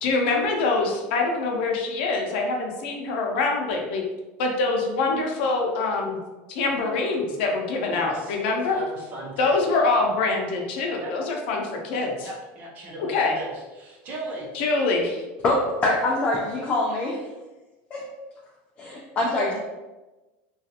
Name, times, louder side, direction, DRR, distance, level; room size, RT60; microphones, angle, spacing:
voice 1, 0.0-4.0 4.4-6.2 6.5-8.8 9.4-12.3 13.1-13.3 14.5-15.2, left 3 dB, 80° left, 1 dB, 0.5 m, -24 dB
voice 2, 7.9-8.3 8.7-9.6 11.0-11.2 12.2-14.5, right 2 dB, 30° right, -2 dB, 0.6 m, -37 dB
voice 3, 15.4-17.3 17.9-18.1 18.8-19.6, left 2 dB, 25° left, -3 dB, 0.3 m, -24 dB
2.4 x 2.3 x 2.7 m, 1.1 s
cardioid pair, 165°, 6 cm